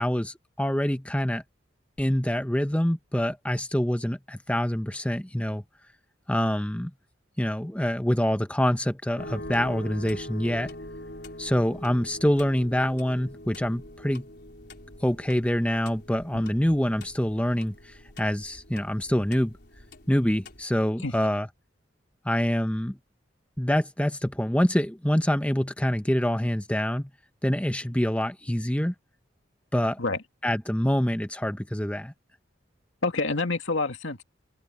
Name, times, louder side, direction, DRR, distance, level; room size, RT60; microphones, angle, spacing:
voice 1, 0.0-1.4 2.0-5.6 6.3-6.9 7.4-10.7 11.4-14.2 15.0-19.5 20.1-21.5 22.2-23.0 23.6-27.1 27.4-28.9 29.7-30.0 30.4-32.1, equal, 5° left, 1.0 m, -26 dB
sound 1, 9.2-20.6, left 1 dB, 60° left, 4.8 m, -43 dB
voice 2, 33.0-34.2, left 3 dB, 85° left, 2.3 m, -27 dB
head